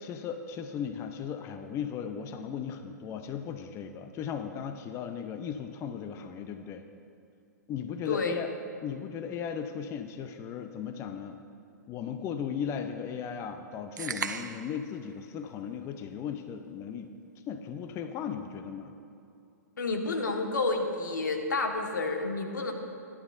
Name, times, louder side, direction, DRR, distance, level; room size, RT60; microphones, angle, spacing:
voice 1, 0.0-6.8 7.7-8.5 8.8-11.4 11.9-17.1 17.5-19.0, left 7 dB, 30° left, 7 dB, 0.6 m, -36 dB
voice 2, 8.1-8.4 19.8-22.7, left 3 dB, 85° left, 3 dB, 1.6 m, -30 dB
Opening Soda Can, 14.0-14.8, right 5 dB, 85° right, 0.7 m, -35 dB
21.0 x 11.5 x 2.6 m, 2.6 s
hypercardioid pair, 120°, 10 cm